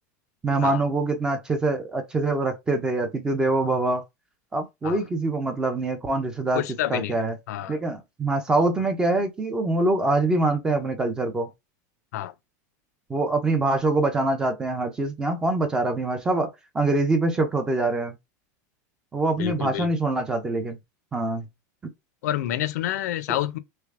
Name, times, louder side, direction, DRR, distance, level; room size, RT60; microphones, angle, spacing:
voice 1, 0.4-4.0 4.5-6.6 6.9-7.4 7.7-11.5 13.1-16.5 16.7-18.2 19.1-20.8 21.1-21.5, right 2 dB, 10° right, 0.3 m, -24 dB
voice 2, 6.5-7.1 7.5-7.8 12.1-12.3 19.4-19.9 22.2-23.6, left 13 dB, 65° left, 0.4 m, -28 dB
3.2 x 3.1 x 2.4 m
supercardioid pair, 180°, 10 cm